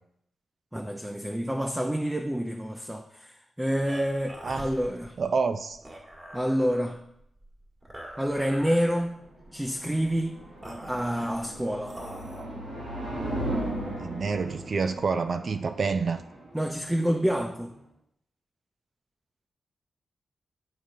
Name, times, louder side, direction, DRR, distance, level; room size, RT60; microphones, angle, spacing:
voice 1, 0.7-5.2 6.3-7.0 8.2-9.2 9.5-10.3 10.9-12.0 16.5-17.8, equal, 10° right, 4 dB, 0.6 m, -28 dB
sound 1, 3.9-12.5, right 1 dB, 30° right, 1.7 m, -45 dB
voice 2, 5.2-5.8 14.0-16.2, right 4 dB, 60° right, 9 dB, 0.4 m, -28 dB
sound 2, 9.1-17.8, right 1 dB, 85° right, 1.9 m, -37 dB
10.5 x 3.7 x 2.7 m, 0.77 s
supercardioid pair, 45°, 0 cm